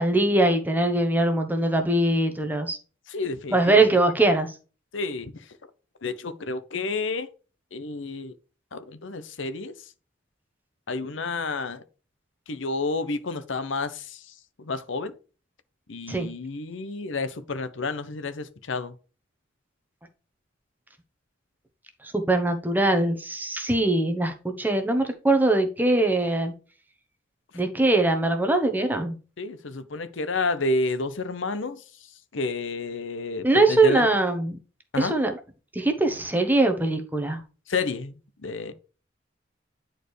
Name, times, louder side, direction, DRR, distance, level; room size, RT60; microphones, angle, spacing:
voice 1, 0.0-2.8 3.5-4.5 16.1-16.3 22.0-26.5 27.5-29.1 33.4-34.6 35.0-35.3 35.7-37.4, right 2 dB, 10° right, 1.0 m, -22 dB
voice 2, 3.1-4.0 4.9-5.4 6.0-7.3 7.7-8.3 8.7-9.7 10.9-11.8 12.5-14.2 14.6-15.2 15.9-18.9 29.4-31.8 32.3-34.1 34.9-35.1 37.7-38.1 38.4-38.7, left 3 dB, 80° left, 0.8 m, -30 dB
10.0 x 4.5 x 3.2 m
head